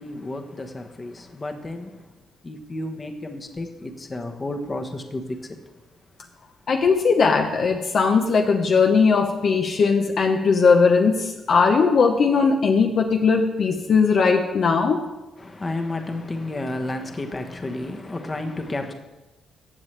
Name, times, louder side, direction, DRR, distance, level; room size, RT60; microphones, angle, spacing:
voice 1, 0.0-2.1 2.4-5.6 15.4-18.9, left 2 dB, 25° left, 1.1 m, -31 dB
voice 2, 6.7-15.0, left 5 dB, 55° left, 0.8 m, -19 dB
14.5 x 7.5 x 3.3 m
cardioid pair, 90°, 0 cm